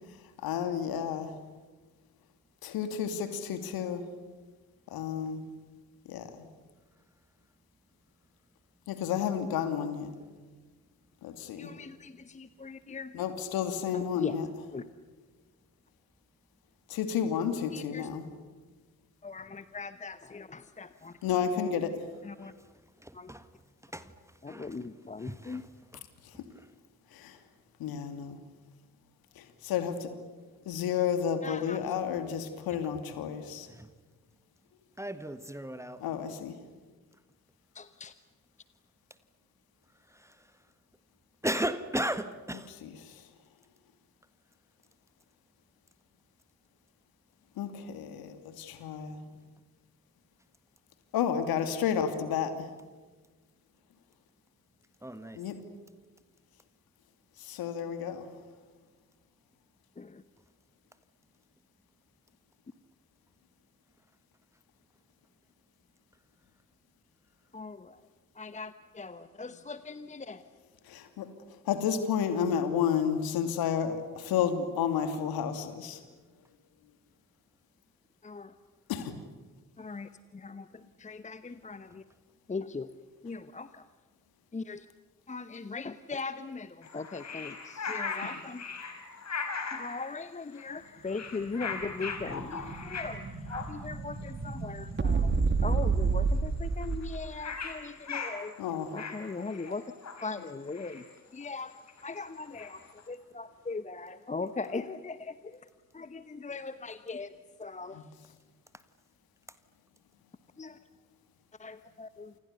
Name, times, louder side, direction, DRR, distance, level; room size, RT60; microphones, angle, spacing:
voice 1, 0.4-1.4 2.7-4.1 4.9-5.5 6.0-6.5 8.9-10.1 11.2-11.7 13.1-14.5 16.9-18.3 21.2-22.0 26.2-26.4 27.1-27.4 27.8-28.4 29.4-30.1 30.6-33.7 36.0-36.6 42.7-43.2 47.6-49.2 51.1-52.7 55.3-55.6 57.4-58.3 70.8-71.3 71.6-76.0 78.9-79.2 98.6-98.9 107.9-108.0, left 8 dB, 60° left, 2.8 m, -31 dB
voice 2, 11.6-13.2 13.9-14.4 14.7-14.8 17.7-18.1 19.2-21.2 22.2-22.5 23.1-23.3 23.9-24.0 24.4-25.6 31.4-31.9 37.7-38.1 60.0-60.2 67.5-68.0 68.3-70.5 78.2-78.5 79.8-82.0 82.5-82.9 83.2-83.9 84.5-84.9 85.3-88.7 89.6-95.3 95.6-98.5 98.9-99.9 100.2-105.7 105.9-107.3 107.6-108.2 110.6-110.8 111.6-112.4, left 4 dB, 15° left, 1.0 m, -40 dB
voice 3, 23.0-23.4 23.9-24.1 24.5-24.7 25.3-25.6 33.7-33.9 35.0-36.0 40.2-40.3 41.4-42.7 55.0-55.4, right 1 dB, 5° right, 1.6 m, -35 dB
sound 1, 86.8-90.1 90.5-90.8 91.1-93.2 93.5-93.7 94.3-94.4 94.6-94.8 95.1-95.4 95.7-95.8 96.0-96.1 96.3-103.0, left 5 dB, 40° left, 5.2 m, -39 dB
Explosion, 91.2-97.3, right 4 dB, 25° right, 2.7 m, -30 dB
30.0 x 28.5 x 7.0 m
figure-of-eight pair, 45°, 42 cm